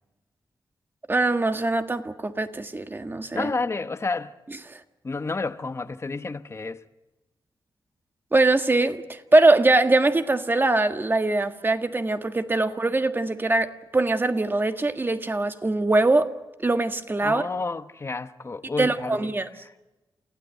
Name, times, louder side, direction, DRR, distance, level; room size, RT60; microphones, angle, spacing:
voice 1, 1.1-3.5 4.7-4.8 8.3-16.3 16.6-17.5 18.8-19.5, right 2 dB, 25° right, 1.6 m, -22 dB
voice 2, 3.3-4.4 5.0-6.8 17.2-19.3 19.6-19.7, left 3 dB, 30° left, 1.0 m, -30 dB
29.0 x 16.0 x 9.1 m
wide cardioid pair, 95°, 8 cm